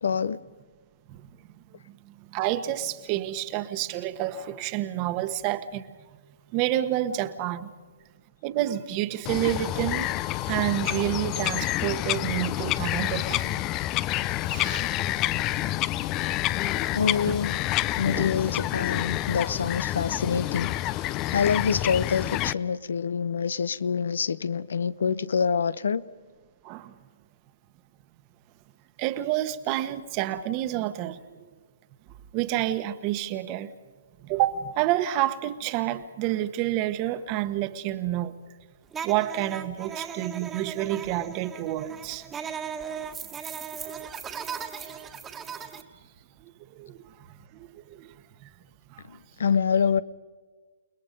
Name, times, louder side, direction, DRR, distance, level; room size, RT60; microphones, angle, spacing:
voice 1, 0.0-0.4 16.9-17.6 18.0-20.7 21.3-26.0 49.1-50.0, left 6 dB, 75° left, 0.8 m, -26 dB
voice 2, 1.9-5.9 6.5-7.7 8.4-10.1 10.5-13.7 14.4-14.9 16.7-16.9 17.3-17.4 18.1-18.3 26.6-26.9 29.0-31.2 32.3-33.7 34.2-38.3 39.0-42.3 45.7-45.9 46.7-47.1 47.5-48.1 48.4-48.5 48.9-49.0, right 13 dB, 35° right, 1.3 m, -29 dB
Bird vocalization bird call bird song, 9.3-22.5, left 15 dB, 30° left, 0.6 m, -28 dB
sound 1, 38.9-45.8, right 7 dB, 15° right, 1.7 m, -37 dB
29.5 x 19.5 x 5.4 m
hypercardioid pair, 140°, 0 cm